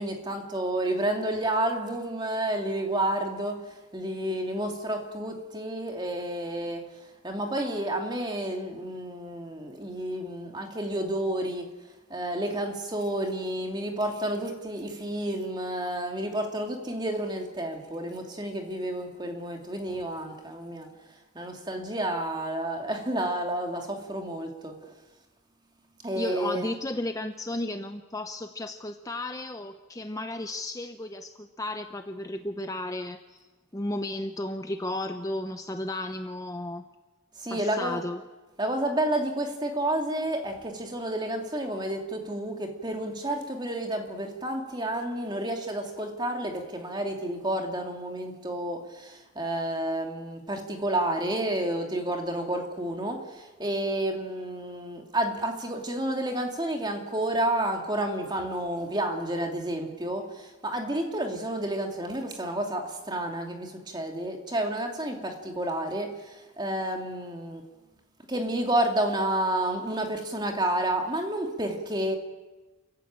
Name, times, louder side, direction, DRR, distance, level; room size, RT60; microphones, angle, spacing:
voice 1, 0.0-6.8 7.2-11.7 12.1-20.9 21.3-24.7 26.0-26.7 37.4-38.0 38.6-67.6 68.3-72.1, right 1 dB, 20° right, 3 dB, 2.6 m, -30 dB
voice 2, 26.2-33.4 33.7-36.8 37.5-38.2, left 1 dB, 15° left, 7 dB, 0.7 m, -34 dB
28.5 x 15.0 x 8.9 m, 1.2 s
head